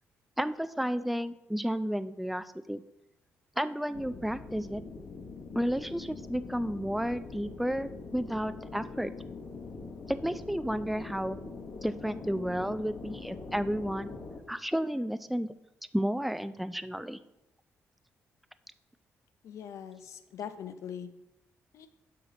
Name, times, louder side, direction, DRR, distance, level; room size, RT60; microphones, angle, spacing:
voice 1, 0.4-2.8 3.6-4.8 5.5-9.1 10.1-11.4 11.8-14.2 14.5-15.5 15.9-17.2, equal, ahead, 12 dB, 0.3 m, -32 dB
sound 1, 3.9-14.4, left 4 dB, 55° left, 1.0 m, -43 dB
voice 2, 19.4-21.1 21.7-21.9, left 8 dB, 75° left, 10 dB, 0.6 m, -41 dB
6.4 x 5.7 x 3.9 m, 0.89 s
cardioid pair, 110°, 5 cm